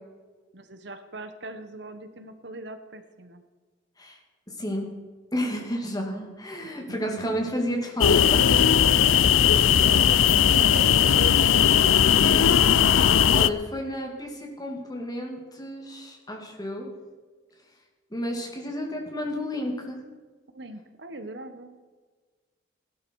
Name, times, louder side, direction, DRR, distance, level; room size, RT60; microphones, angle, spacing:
voice 1, 0.5-3.4 6.5-7.4 9.6-12.6 18.9-19.1 20.5-21.9, right 1 dB, 60° right, 9 dB, 1.1 m, -40 dB
voice 2, 4.5-4.9 5.3-8.6 13.4-16.9 18.1-20.0, equal, 20° left, 0 dB, 2.5 m, -31 dB
sound 1, 8.0-13.5, left 8 dB, 80° left, 0.5 m, -18 dB
16.5 x 12.0 x 4.7 m, 1.4 s
head